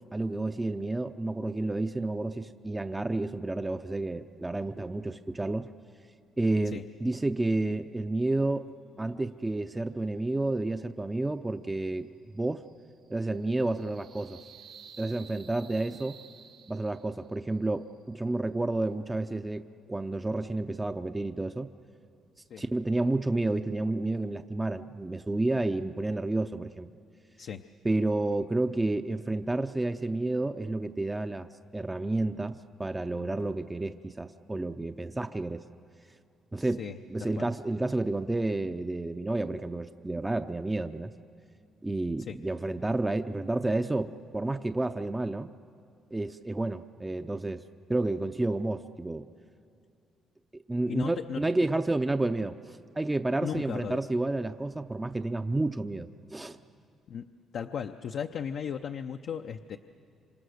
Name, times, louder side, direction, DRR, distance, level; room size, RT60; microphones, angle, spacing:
voice 1, 0.1-5.7 6.4-8.7 9.0-12.1 12.3-12.6 13.1-14.4 15.0-16.2 16.7-19.6 19.9-21.7 22.6-26.9 27.8-31.5 31.7-35.6 36.5-41.1 41.8-45.5 46.1-47.6 47.9-49.2 50.5-56.6, right 2 dB, 15° right, 7 dB, 0.6 m, -30 dB
sound 1, 11.3-17.3, right 7 dB, 85° right, 2.5 m, -54 dB
voice 2, 36.8-37.5 42.3-42.4 50.9-51.4 53.4-54.0 57.1-57.2 57.5-59.8, left 7 dB, 65° left, 6 dB, 0.6 m, -36 dB
27.0 x 25.5 x 6.5 m, 2.5 s
cardioid pair, 90°, 0 cm